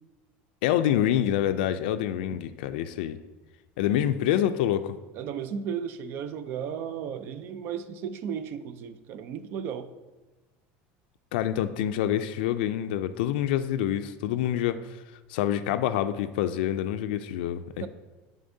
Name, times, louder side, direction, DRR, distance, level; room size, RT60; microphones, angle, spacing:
voice 1, 0.6-3.2 3.8-5.0 11.3-15.0 15.3-17.9, left 11 dB, 85° left, 10 dB, 0.3 m, -26 dB
voice 2, 5.1-9.9 17.8-17.9, right 7 dB, 45° right, 12 dB, 0.4 m, -34 dB
10.0 x 3.6 x 2.7 m, 1.2 s
cardioid pair, 155°, 5 cm